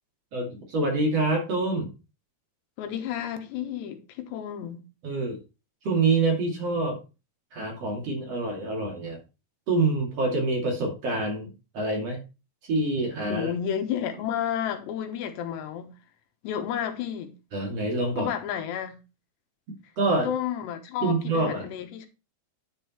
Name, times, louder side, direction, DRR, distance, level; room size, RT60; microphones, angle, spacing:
voice 1, 0.3-1.9 5.0-5.4 5.8-7.0 7.5-9.2 9.7-12.2 12.6-13.5 17.5-18.3 20.0-20.3 21.0-21.7, right 2 dB, 40° right, 3.2 m, -26 dB
voice 2, 2.8-4.8 13.3-15.9 16.4-17.3 18.2-19.0 20.2-22.1, left 9 dB, 85° left, 3.4 m, -31 dB
10.5 x 5.4 x 4.4 m
omnidirectional pair, 4.8 m